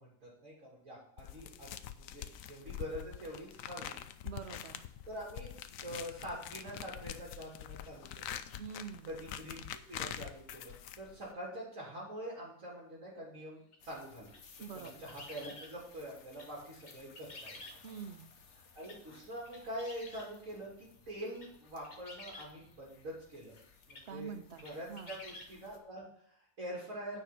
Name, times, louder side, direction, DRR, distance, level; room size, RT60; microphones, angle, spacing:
voice 1, 0.0-1.7 2.0-4.0 5.1-8.4 9.1-9.6 9.9-14.3 14.7-17.6 18.7-23.6 23.9-24.3 24.6-27.2, equal, 80° right, -6 dB, 3.2 m, -45 dB
sound 1, 1.2-11.3, left 10 dB, 85° left, 1.0 m, -45 dB
voice 2, 4.2-4.8 8.6-9.2 14.6-15.1 17.8-18.3 24.1-25.2, right 7 dB, 60° right, 9 dB, 1.0 m, -46 dB
sound 2, 13.7-13.8 14.3-15.7 16.3-16.5 16.8-18.1 18.8-19.0 19.4-20.3 21.1-21.5 21.8-22.5 23.6-23.7 23.9-24.1 24.6-25.5, left 2 dB, 35° left, 1.2 m, -51 dB
sound 3, 13.8-25.8, left 5 dB, 60° left, 1.3 m, -60 dB
9.3 x 5.3 x 5.8 m, 0.68 s
omnidirectional pair, 1.4 m